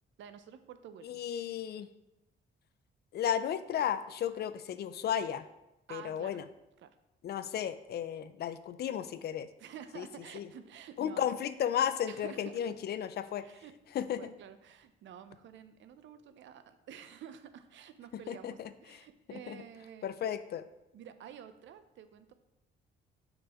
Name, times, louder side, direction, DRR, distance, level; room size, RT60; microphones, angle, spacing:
voice 1, 0.2-1.2 5.9-6.4 6.8-6.9 9.6-11.3 12.1-12.5 13.4-20.1 20.9-22.3, right 9 dB, 70° right, 11 dB, 0.6 m, -50 dB
voice 2, 1.0-1.9 3.1-5.5 5.9-6.4 7.2-9.5 10.0-10.1 10.3-10.5 11.0-13.4 13.9-14.3 18.3-19.0 19.3-19.6 20.0-20.6, left 9 dB, 55° left, 12 dB, 0.4 m, -34 dB
6.6 x 5.5 x 3.0 m, 0.91 s
cardioid pair, 90°, 20 cm